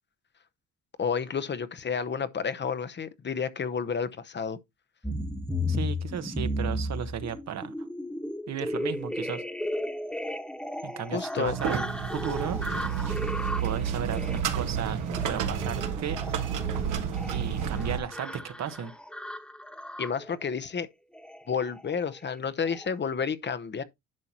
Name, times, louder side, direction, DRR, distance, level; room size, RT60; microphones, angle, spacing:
voice 1, 1.0-4.6 11.1-11.6 20.0-20.9 21.5-23.8, left 6 dB, 35° left, 0.8 m, -30 dB
sound 1, 5.0-20.4 21.2-21.4 21.7-21.9 22.2-22.4 22.7-22.9, left 1 dB, 5° left, 1.3 m, -35 dB
voice 2, 5.7-7.7 8.5-9.4 10.8-12.6 13.6-16.2 17.3-18.9, right 8 dB, 60° right, 1.1 m, -35 dB
sound 2, 11.4-18.0, right 7 dB, 90° right, 1.6 m, -30 dB
10.5 x 5.8 x 2.9 m
cardioid pair, 90°, 30 cm